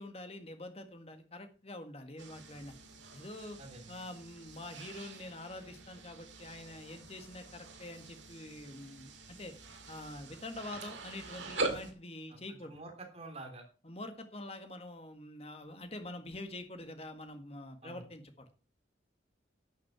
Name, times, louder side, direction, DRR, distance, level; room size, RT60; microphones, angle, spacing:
voice 1, 0.0-2.7 3.1-3.6 3.9-9.5 9.9-12.8 13.8-18.6, left 1 dB, 35° left, 7 dB, 1.8 m, -46 dB
sound 1, 2.2-11.9, right 3 dB, 85° right, 2.4 m, -44 dB
voice 2, 3.6-4.0 12.3-13.6 17.8-18.1, right 2 dB, 35° right, 3 dB, 3.3 m, -48 dB
11.5 x 6.6 x 6.1 m, 0.35 s
head